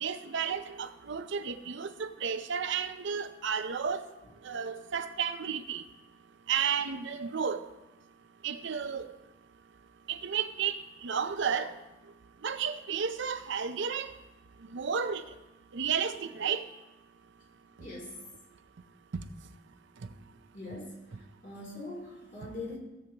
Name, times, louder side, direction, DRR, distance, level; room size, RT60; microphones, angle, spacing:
voice 1, 0.0-4.0 4.4-5.8 6.5-7.6 8.4-9.1 10.1-11.7 12.4-14.1 14.7-15.2 15.7-16.6, right 7 dB, 65° right, 9 dB, 0.6 m, -32 dB
voice 2, 17.8-18.2 20.5-21.0 21.4-22.8, left 2 dB, 40° left, -3 dB, 3.1 m, -41 dB
17.0 x 7.5 x 2.9 m, 1.1 s
head